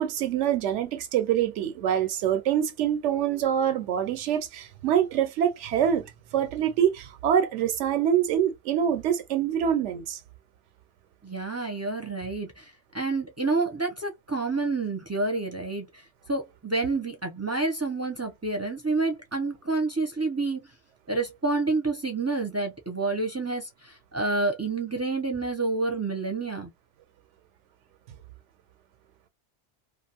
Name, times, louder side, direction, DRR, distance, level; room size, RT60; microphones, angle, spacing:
voice 1, 0.0-10.2, right 9 dB, 90° right, 0.9 m, -25 dB
voice 2, 11.2-16.0 16.3-20.6 21.1-26.7, right 3 dB, 20° right, 0.4 m, -29 dB
2.5 x 2.3 x 2.7 m
omnidirectional pair, 1.2 m